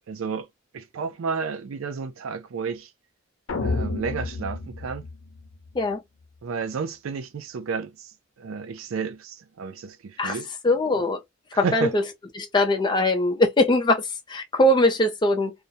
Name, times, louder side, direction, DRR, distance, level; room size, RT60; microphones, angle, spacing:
voice 1, 0.1-0.5 0.7-2.9 3.6-5.0 6.4-8.1 8.4-10.5 11.5-11.9, right 5 dB, 85° right, 0.4 m, -31 dB
sound 1, 3.5-5.8, left 3 dB, 80° left, 0.5 m, -30 dB
voice 2, 10.6-11.2 11.5-12.0 12.4-14.0 14.3-15.5, left 1 dB, 20° left, 0.4 m, -21 dB
2.4 x 2.1 x 2.5 m
head